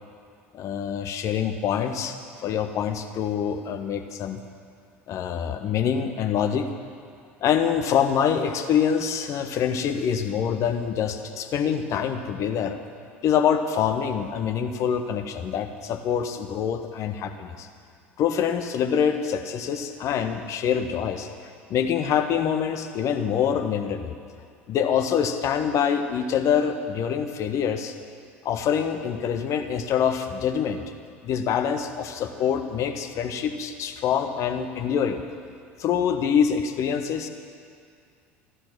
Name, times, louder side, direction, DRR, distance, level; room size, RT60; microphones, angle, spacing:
voice 1, 0.5-4.4 5.1-6.7 7.4-12.8 13.2-17.7 18.2-21.3 21.7-24.1 24.7-27.9 28.4-30.8 31.2-35.2 35.8-37.3, left 8 dB, 45° left, 8 dB, 1.2 m, -25 dB
14.0 x 13.0 x 6.1 m, 2.2 s
figure-of-eight pair, 70°, 7 cm